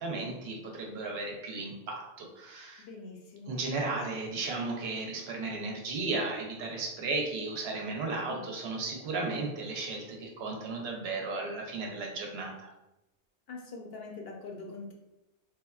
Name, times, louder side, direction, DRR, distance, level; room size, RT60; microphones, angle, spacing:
voice 1, 0.0-2.9 3.5-12.7, right 3 dB, 70° right, 1 dB, 0.8 m, -35 dB
voice 2, 2.8-3.5 8.3-8.5 13.5-14.9, left 3 dB, 65° left, 0 dB, 0.7 m, -43 dB
3.4 x 2.2 x 2.3 m, 0.95 s
omnidirectional pair, 1.1 m